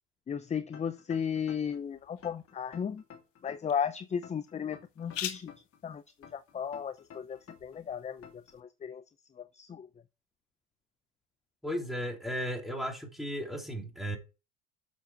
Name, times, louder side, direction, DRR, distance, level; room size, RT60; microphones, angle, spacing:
voice 1, 0.3-3.0 3.4-5.5 5.8-6.0 6.3-9.0 9.4-9.9, left 7 dB, 20° left, 0.5 m, -35 dB
sound 1, 0.7-1.8 2.2-3.8 4.2-5.8 6.2-7.8 8.2-8.5, left 7 dB, 40° left, 2.5 m, -51 dB
sound 2, 1.1-8.6, left 11 dB, 85° left, 1.5 m, -47 dB
voice 2, 11.6-14.2, equal, ahead, 3.3 m, -35 dB
7.3 x 7.1 x 4.5 m
hypercardioid pair, 80°, 36 cm